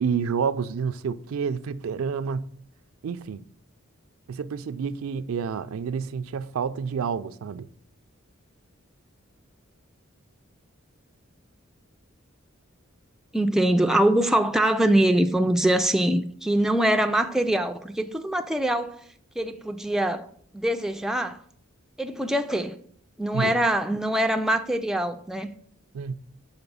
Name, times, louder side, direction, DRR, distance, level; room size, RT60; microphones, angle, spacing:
voice 1, 0.0-2.5 3.0-3.4 4.3-7.7 23.3-23.5 25.9-26.2, right 6 dB, 80° right, 0.4 m, -29 dB
voice 2, 13.3-19.0 19.4-21.4 22.0-22.8 23.2-25.5, right 1 dB, ahead, 0.3 m, -23 dB
5.8 x 4.2 x 5.3 m
head